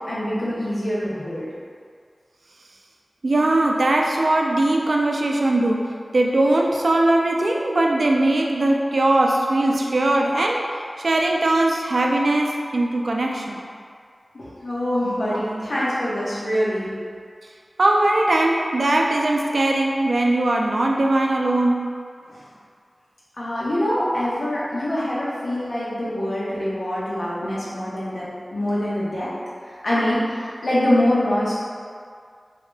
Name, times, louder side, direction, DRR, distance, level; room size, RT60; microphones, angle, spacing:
voice 1, 0.1-1.4 14.3-16.9 22.3-22.5 23.4-29.3 29.6-31.5, left 1 dB, 85° left, -9 dB, 1.0 m, -24 dB
voice 2, 3.2-5.8 6.1-13.6 17.8-21.9, right 2 dB, 85° right, 0 dB, 0.4 m, -20 dB
4.7 x 2.8 x 2.2 m, 2.1 s
wide cardioid pair, 55°, 0 cm